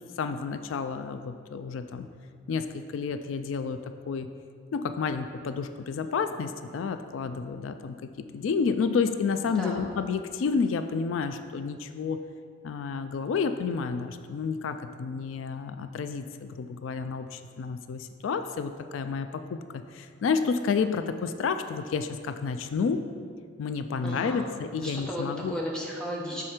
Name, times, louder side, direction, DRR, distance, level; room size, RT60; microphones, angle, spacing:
voice 1, 0.2-2.1 2.5-4.3 4.7-8.0 8.3-12.2 12.6-23.0 23.6-25.6, left 5 dB, 85° left, 9 dB, 0.3 m, -30 dB
voice 2, 24.0-24.4 24.8-26.4, equal, 5° left, -3 dB, 0.9 m, -34 dB
6.4 x 4.9 x 4.4 m, 2.1 s
head